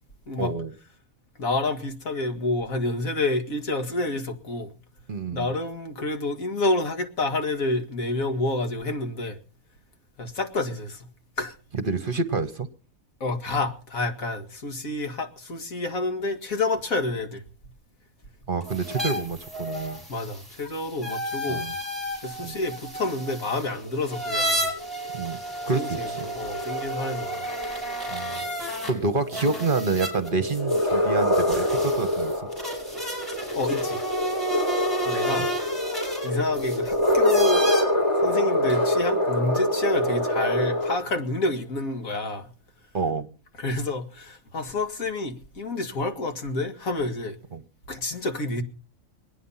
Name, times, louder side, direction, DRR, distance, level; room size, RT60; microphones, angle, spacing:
voice 1, 0.4-0.7 5.1-5.5 11.7-12.7 18.5-20.0 21.5-21.7 22.4-22.6 25.1-25.4 25.7-26.3 28.1-32.5 35.4-35.5 42.9-43.3 47.5-47.6, right 3 dB, 40° right, 1.2 m, -28 dB
voice 2, 1.4-4.7 5.3-9.4 10.2-11.1 11.4-11.6 13.2-17.4 20.1-21.6 22.2-24.7 25.7-27.5 33.5-34.0 35.1-35.5 36.2-37.7 38.2-42.5 43.6-47.4 47.9-48.6, left 2 dB, 75° left, 2.5 m, -28 dB
sound 1, 18.6-28.9 29.3-37.8, right 1 dB, ahead, 7.2 m, -32 dB
sound 2, 23.6-41.0, left 1 dB, 20° left, 3.0 m, -26 dB
23.5 x 9.4 x 5.7 m
omnidirectional pair, 1.5 m